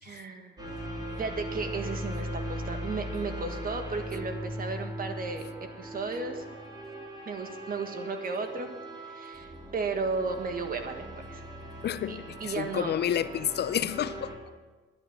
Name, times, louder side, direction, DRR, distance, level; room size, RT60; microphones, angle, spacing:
voice 1, 0.0-0.6 1.2-6.4 7.2-8.7 9.0-11.4 12.1-12.9, right 4 dB, 45° right, 6 dB, 1.7 m, -34 dB
sound 1, 0.6-14.3, equal, 20° right, 3.2 m, -39 dB
voice 2, 11.8-14.3, left 10 dB, 55° left, 14 dB, 0.6 m, -30 dB
11.0 x 9.2 x 7.5 m, 1.3 s
cardioid pair, 90°, 20 cm